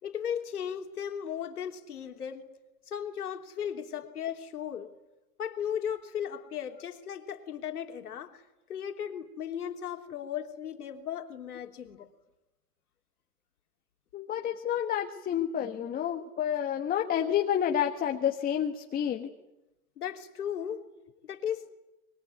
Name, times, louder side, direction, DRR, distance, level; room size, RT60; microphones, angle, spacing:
voice 1, 0.0-2.5 2.9-4.9 5.4-8.4 8.7-12.1 20.0-20.8 21.2-21.7, left 9 dB, 85° left, 4 dB, 3.2 m, -36 dB
voice 2, 14.1-19.3, left 9 dB, 20° left, 4 dB, 1.4 m, -29 dB
27.0 x 22.5 x 9.4 m, 0.95 s
hypercardioid pair, 130°, 44 cm